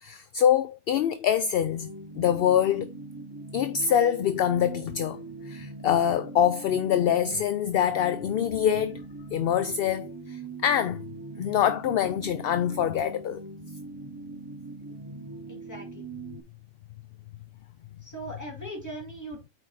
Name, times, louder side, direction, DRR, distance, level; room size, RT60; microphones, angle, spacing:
voice 1, 0.0-1.9 2.2-2.9 3.5-9.0 9.3-11.0 11.4-13.4, left 9 dB, 60° left, 0.7 m, -25 dB
sound 1, 1.6-16.4, right 3 dB, 20° right, 0.7 m, -41 dB
voice 2, 15.5-16.1 18.0-19.5, right 2 dB, 15° left, 2.6 m, -40 dB
8.4 x 4.8 x 4.1 m
omnidirectional pair, 1.3 m